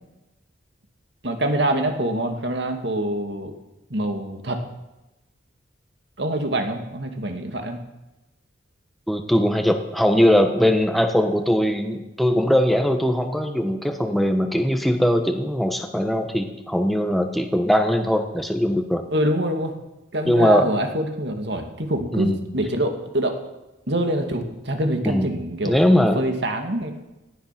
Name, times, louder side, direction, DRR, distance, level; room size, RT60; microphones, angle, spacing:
voice 1, 1.2-3.5 3.9-4.6 6.2-7.8 19.1-19.7 20.1-23.4 23.9-26.9, right 1 dB, 60° right, 4 dB, 2.4 m, -25 dB
voice 2, 9.1-19.0 20.3-20.7 22.1-22.4 25.0-25.3 25.6-26.2, equal, ahead, 5 dB, 1.2 m, -20 dB
18.0 x 13.5 x 6.0 m, 0.98 s
head